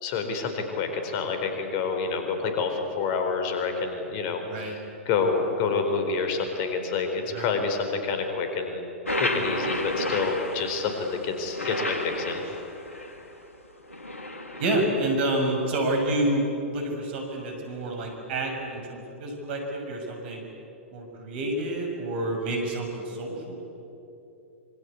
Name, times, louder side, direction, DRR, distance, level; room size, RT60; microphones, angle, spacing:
voice 1, 0.0-4.8 5.0-8.8 9.2-12.4, left 4 dB, 40° left, 5 dB, 4.2 m, -28 dB
sound 1, 9.1-13.3 13.9-14.9, left 1 dB, 85° left, 2.7 m, -32 dB
voice 2, 14.6-20.4 20.9-23.6, right 1 dB, 50° right, 3 dB, 6.8 m, -28 dB
26.5 x 25.0 x 8.4 m, 2.9 s
figure-of-eight pair, 105°, 7 cm